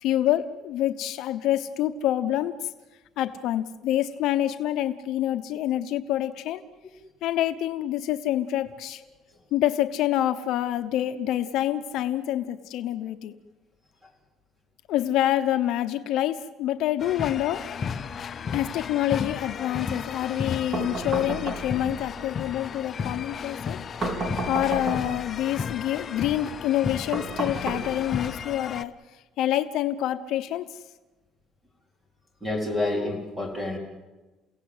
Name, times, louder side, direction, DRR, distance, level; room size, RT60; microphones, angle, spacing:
voice 1, 0.0-2.5 3.2-6.6 7.2-9.0 9.5-13.3 14.9-17.6 18.5-23.8 24.5-28.9 29.4-30.7, left 12 dB, 60° left, 8 dB, 0.9 m, -26 dB
sound 1, 17.0-28.8, left 6 dB, 30° left, 0.7 m, -34 dB
sound 2, 20.7-22.0 24.0-25.3 27.1-28.3, right 2 dB, 35° right, 4.1 m, -32 dB
voice 2, 32.4-33.8, left 2 dB, 10° right, 2 dB, 3.9 m, -28 dB
29.5 x 16.5 x 8.0 m, 1.2 s
cardioid pair, 170°, 0 cm